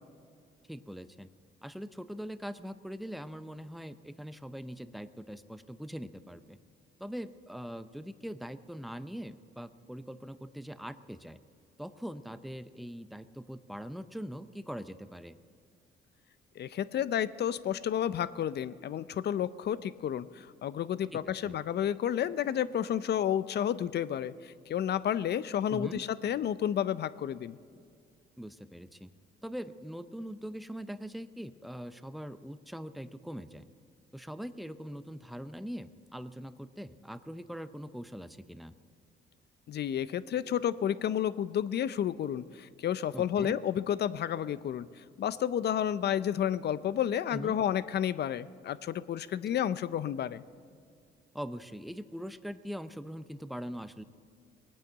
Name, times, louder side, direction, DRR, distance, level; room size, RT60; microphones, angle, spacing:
voice 1, 0.7-1.3 1.6-6.6 7.0-11.4 11.8-15.4 21.1-21.5 25.7-26.0 28.4-29.1 29.4-33.6 34.1-38.7 43.1-43.6 47.3-47.6 51.3-54.0, equal, ahead, 12 dB, 0.6 m, -42 dB
voice 2, 16.6-27.6 39.7-50.4, left 10 dB, 55° left, 16 dB, 0.6 m, -31 dB
20.0 x 9.1 x 7.9 m, 2.3 s
cardioid pair, 90°, 20 cm